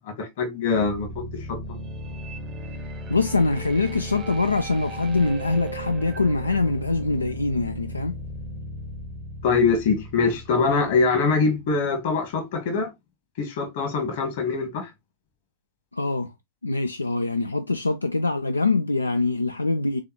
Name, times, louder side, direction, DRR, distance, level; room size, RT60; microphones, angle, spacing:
voice 1, 0.0-1.6 9.4-12.9 13.4-14.9, left 4 dB, 50° left, 1.4 m, -23 dB
sound 1, 0.7-11.7, equal, 25° right, 0.7 m, -36 dB
voice 2, 3.1-8.2 15.9-16.3 16.6-20.0, left 3 dB, 80° left, 0.3 m, -24 dB
3.9 x 3.6 x 2.9 m
figure-of-eight pair, 90°, 0 cm